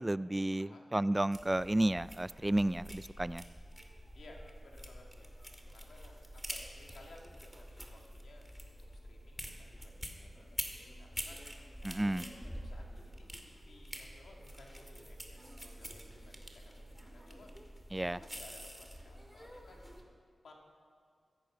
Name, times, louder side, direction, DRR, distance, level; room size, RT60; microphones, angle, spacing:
voice 1, 0.0-3.4 11.8-12.2 17.9-18.2, right 1 dB, 20° right, 18 dB, 0.3 m, -32 dB
sound 1, 1.3-20.0, equal, 5° right, 2.3 m, -47 dB
voice 2, 4.1-5.3 5.7-11.4 12.0-17.5 17.9-19.9 20.4-20.5, left 2 dB, 90° left, 0 dB, 2.3 m, -58 dB
16.0 x 13.5 x 5.8 m, 2.1 s
cardioid pair, 50°, 0 cm